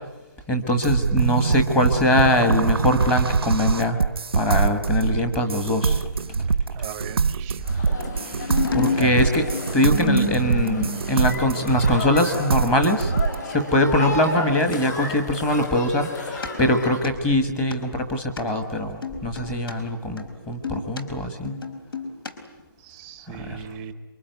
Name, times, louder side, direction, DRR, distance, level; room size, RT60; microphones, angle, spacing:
voice 1, 0.5-4.0 4.3-6.0 7.7-7.9 8.2-9.4 9.7-13.1 13.5-21.6 23.4-23.6, left 1 dB, 10° left, 7 dB, 1.4 m, -22 dB
sound 1, 0.8-13.4, right 5 dB, 90° right, 0.9 m, -24 dB
voice 2, 6.7-7.6 8.8-9.3 22.8-23.9, right 8 dB, 10° right, 11 dB, 0.9 m, -37 dB
sound 2, 7.6-17.0, left 3 dB, 45° left, 6.3 m, -34 dB
sound 3, 8.3-11.4 14.5-14.8 16.4-16.5 16.9-17.1 17.7-17.8 18.4-18.5 19.0-19.7 20.2-21.0 21.4-22.3 22.6-22.7, left 3 dB, 70° left, 4.5 m, -29 dB
27.5 x 23.5 x 9.3 m, 1.1 s
hypercardioid pair, 170°, 12 cm